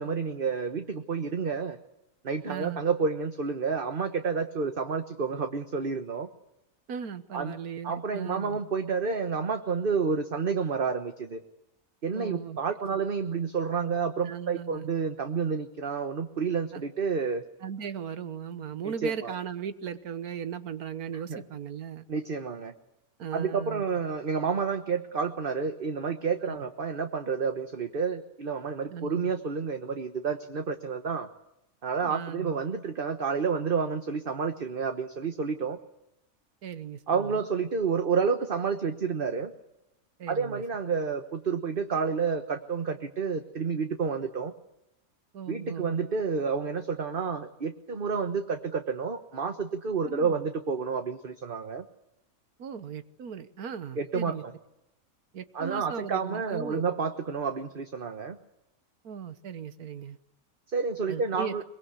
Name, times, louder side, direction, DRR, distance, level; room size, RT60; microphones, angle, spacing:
voice 1, 0.0-1.8 2.2-6.3 7.3-7.6 7.8-11.4 12.0-17.4 18.8-19.3 21.3-21.4 22.1-22.7 23.3-31.3 31.8-35.8 37.1-39.5 40.3-44.5 45.5-51.8 54.0-54.5 55.5-58.4 60.7-61.6, right 5 dB, 40° right, 7 dB, 1.3 m, -30 dB
voice 2, 2.4-2.8 6.9-8.6 12.1-12.6 14.2-14.9 16.7-16.8 17.6-22.1 23.2-23.8 26.4-26.6 28.9-29.3 32.0-32.5 36.6-37.4 40.2-40.6 45.3-46.0 50.0-50.4 52.6-54.4 55.3-56.8 59.0-60.2 61.1-61.5, right 7 dB, 85° right, 13 dB, 1.7 m, -37 dB
23.5 x 22.0 x 8.3 m, 0.86 s
omnidirectional pair, 1.5 m